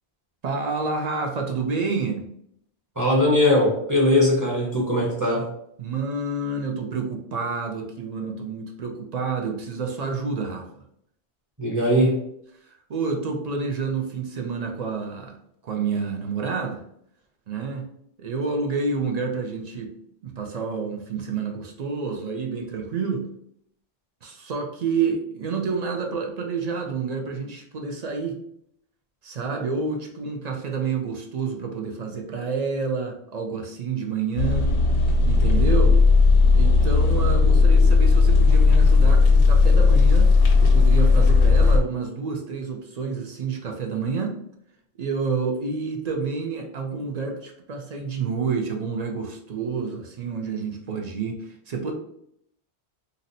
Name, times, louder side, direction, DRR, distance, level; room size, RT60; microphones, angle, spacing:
voice 1, 0.4-2.3 5.8-10.8 12.6-15.4 15.6-16.8 17.5-17.9 18.2-19.9 20.2-23.3 24.2-28.4 29.2-34.7 35.3-36.0 36.5-40.3 40.6-44.3 45.0-51.9, right 5 dB, 55° right, 2 dB, 0.5 m, -29 dB
voice 2, 3.0-5.5 11.6-12.2, left 1 dB, 20° right, -3 dB, 0.7 m, -20 dB
sound 1, 34.4-41.8, left 4 dB, 90° left, 0.9 m, -16 dB
2.7 x 2.1 x 3.9 m, 0.71 s
omnidirectional pair, 1.1 m